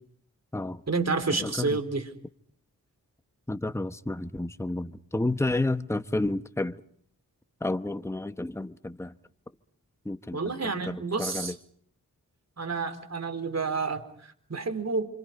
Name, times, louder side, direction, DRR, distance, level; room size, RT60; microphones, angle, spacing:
voice 1, 0.9-2.1 10.3-11.5 12.6-15.1, right 4 dB, 45° right, 4.2 m, -29 dB
voice 2, 1.4-1.8 3.5-6.8 7.6-9.1 10.0-11.6, left 2 dB, 10° left, 1.1 m, -31 dB
29.5 x 27.0 x 5.3 m
wide cardioid pair, 75°, 35 cm